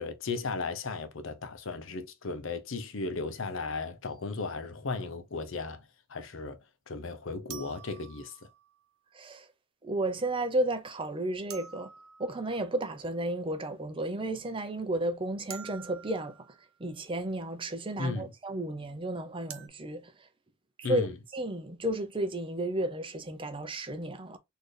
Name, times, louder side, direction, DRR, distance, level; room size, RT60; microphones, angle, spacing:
voice 1, 0.0-6.6 6.9-8.4 18.0-18.3 20.8-21.1, left 3 dB, 60° left, 0.6 m, -35 dB
sound 1, 4.1-4.2 7.5-8.8 11.5-12.9 15.5-16.7 19.5-19.7, right 8 dB, 80° right, 0.8 m, -48 dB
voice 2, 9.1-9.5 9.8-11.9 12.2-20.3 20.8-21.1 21.3-24.4, right 1 dB, 25° right, 0.5 m, -33 dB
4.2 x 2.6 x 3.2 m
head